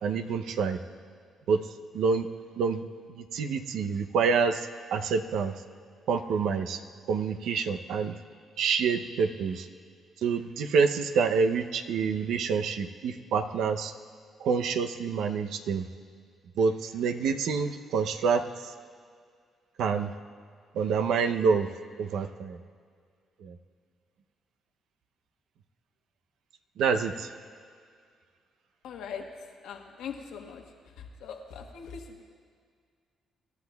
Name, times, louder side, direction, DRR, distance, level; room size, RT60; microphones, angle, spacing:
voice 1, 0.0-0.8 1.5-1.6 1.9-2.3 2.6-2.8 3.1-5.5 6.1-6.8 7.1-8.1 8.6-9.7 10.2-13.9 14.4-15.8 16.6-18.7 19.8-20.1 20.7-21.7 22.0-22.6 23.4-23.5 26.8-27.3, right 5 dB, 80° right, 7 dB, 0.7 m, -27 dB
voice 2, 28.8-29.2 29.6-30.6 31.2-32.2, left 7 dB, 85° left, 2 dB, 1.4 m, -40 dB
25.5 x 12.0 x 2.3 m, 2.1 s
cardioid pair, 90°, 0 cm